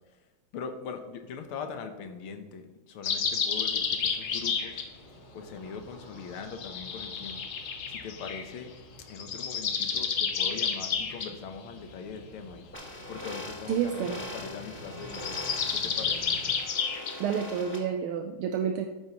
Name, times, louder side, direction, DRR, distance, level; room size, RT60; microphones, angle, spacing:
voice 1, 0.5-4.8 5.3-7.4 7.9-8.7 9.1-12.7 13.1-15.4 15.7-16.4, left 6 dB, 85° left, 6 dB, 1.8 m, -41 dB
sound 1, 3.0-4.9 6.5-8.5 9.1-11.3 15.0-17.2, left 6 dB, 70° left, 0.7 m, -30 dB
sound 2, 3.7-16.5, right 1 dB, 25° right, 3.7 m, -51 dB
sound 3, 12.7-17.8, left 1 dB, 5° left, 1.7 m, -42 dB
voice 2, 13.7-14.2 17.2-18.9, right 8 dB, 85° right, 5 dB, 1.5 m, -29 dB
12.5 x 9.0 x 3.0 m, 1.2 s
omnidirectional pair, 2.3 m